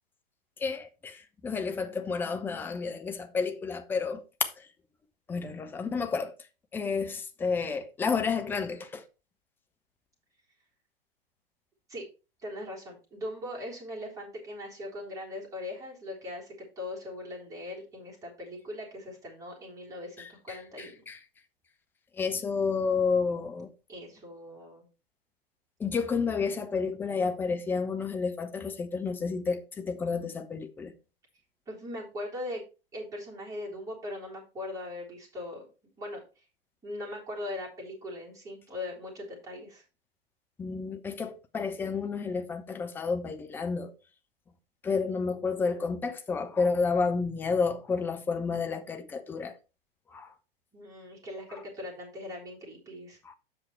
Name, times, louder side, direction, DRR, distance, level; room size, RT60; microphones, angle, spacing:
voice 1, 0.6-4.7 5.3-6.3 6.7-9.0 20.2-21.2 22.1-23.7 25.8-30.9 40.6-43.9 44.8-49.6 50.1-50.3 53.2-53.3, left 5 dB, 5° left, 0.5 m, -31 dB
voice 2, 12.4-21.0 23.9-24.9 31.7-32.6 32.9-35.7 36.0-36.5 36.8-39.8 50.7-53.2, left 1 dB, 10° right, 3.6 m, -40 dB
7.7 x 5.7 x 4.4 m
figure-of-eight pair, 110°, 30 cm